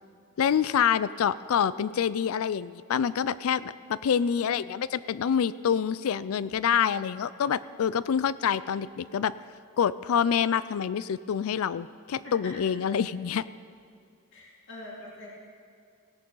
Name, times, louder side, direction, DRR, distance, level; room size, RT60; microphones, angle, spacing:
voice 1, 0.4-9.3 9.8-13.4, left 8 dB, 75° left, 17 dB, 0.4 m, -26 dB
voice 2, 14.3-15.3, left 2 dB, 60° left, -4 dB, 2.2 m, -43 dB
17.0 x 10.5 x 3.9 m, 2.3 s
head